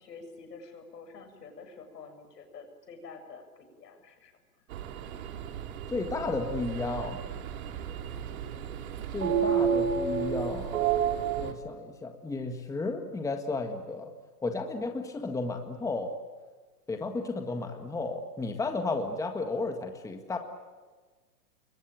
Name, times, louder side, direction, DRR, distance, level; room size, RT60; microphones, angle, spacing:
voice 1, 0.0-4.4 7.8-8.4 17.5-17.9, left 4 dB, 75° left, 6 dB, 7.4 m, -49 dB
sound 1, 4.7-11.5, right 7 dB, 60° right, 3.1 m, -31 dB
voice 2, 5.9-7.2 9.1-10.9 11.4-14.1 14.4-16.2 16.9-20.4, left 3 dB, 5° left, 5 dB, 1.7 m, -33 dB
28.0 x 23.0 x 9.1 m, 1.3 s
hypercardioid pair, 135°, 48 cm